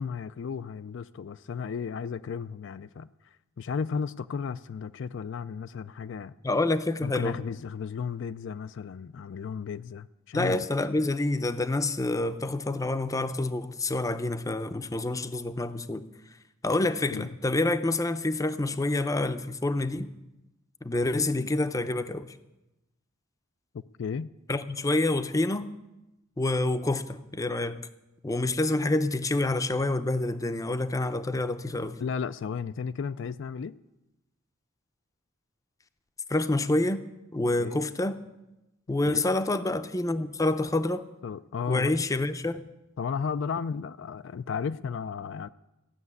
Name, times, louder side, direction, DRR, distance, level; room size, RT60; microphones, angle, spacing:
voice 1, 0.0-6.3 7.0-10.7 17.1-17.3 21.4-21.5 24.0-24.3 32.0-33.7 37.6-37.8 39.0-39.3 41.2-42.0 43.0-45.5, left 6 dB, 60° left, 0.4 m, -34 dB
voice 2, 6.4-7.4 10.3-16.0 16.6-20.1 20.8-22.3 24.5-25.7 26.4-27.8 28.2-32.0 36.3-37.0 37.3-38.2 38.9-41.0 41.7-42.7, left 2 dB, 15° left, 0.6 m, -27 dB
15.5 x 6.7 x 9.6 m
head